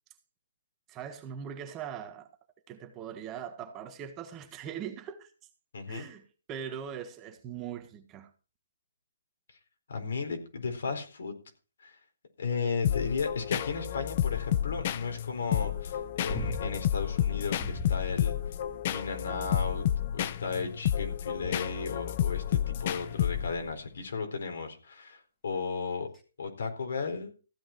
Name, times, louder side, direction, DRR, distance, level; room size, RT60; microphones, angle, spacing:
voice 1, 0.9-2.3 2.7-5.3 5.9-8.3, right 8 dB, 15° right, 1.5 m, -41 dB
voice 2, 5.7-6.1 9.9-11.3 11.8-11.9 12.4-18.3 18.9-19.9 20.1-26.1 26.4-27.3, left 4 dB, 70° left, 4.3 m, -35 dB
sound 1, 12.8-23.7, left 11 dB, 35° left, 0.7 m, -31 dB
sound 2, 16.3-16.9 17.6-18.1 19.4-20.2 21.4-21.9 23.3-23.8 26.1-26.2, left 2 dB, 15° left, 2.2 m, -38 dB
15.0 x 8.9 x 4.6 m
hypercardioid pair, 165°, 0 cm